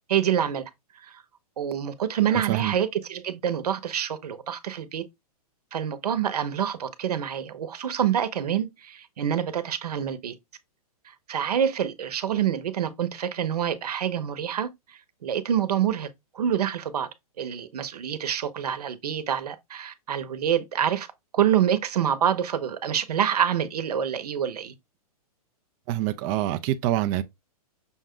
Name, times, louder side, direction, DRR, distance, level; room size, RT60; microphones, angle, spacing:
voice 1, 0.1-0.6 1.0-1.2 1.6-5.0 5.7-10.3 11.0-16.1 16.3-17.1 17.4-21.1 21.3-24.7, right 9 dB, 80° right, 0.9 m, -26 dB
voice 2, 2.3-2.7 25.9-27.2, right 14 dB, 30° right, 0.4 m, -26 dB
6.0 x 2.3 x 3.7 m
hypercardioid pair, 140°, 20 cm